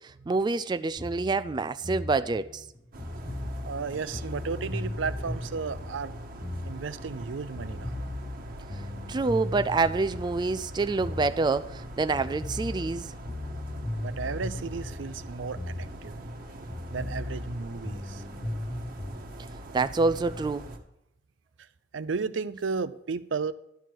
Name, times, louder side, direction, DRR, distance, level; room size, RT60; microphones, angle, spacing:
voice 1, 0.3-2.6 9.1-13.1 19.7-20.6, right 3 dB, 25° right, 0.3 m, -27 dB
sound 1, 1.0-7.3 7.6-11.9 12.1-16.4 16.7-19.3, left 1 dB, 20° left, 0.6 m, -37 dB
sound 2, 2.9-20.8, right 1 dB, 50° right, 1.2 m, -42 dB
voice 2, 3.7-6.1 6.6-8.0 14.0-16.2 16.9-18.2 21.9-23.5, right 5 dB, 85° right, 0.5 m, -34 dB
11.5 x 4.6 x 7.6 m
head